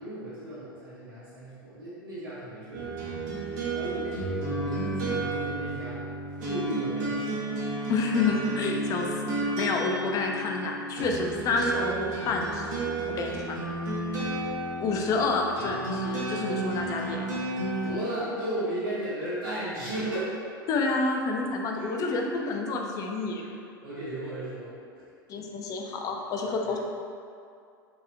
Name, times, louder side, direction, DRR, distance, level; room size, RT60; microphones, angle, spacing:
voice 1, 0.0-6.0 6.4-7.4 7.8-7.9 14.5-14.6 17.8-20.4 21.7-22.1 23.3-24.7 26.5-26.8, right 1 dB, 90° right, -15 dB, 0.9 m, -35 dB
sound 1, 2.7-17.9, right 2 dB, 60° right, 0.8 m, -32 dB
voice 2, 7.9-13.6 14.8-17.3 20.7-23.4 25.3-26.8, left 3 dB, 30° left, 1 dB, 0.4 m, -29 dB
3.0 x 2.8 x 2.4 m, 2.4 s
figure-of-eight pair, 80°, 11 cm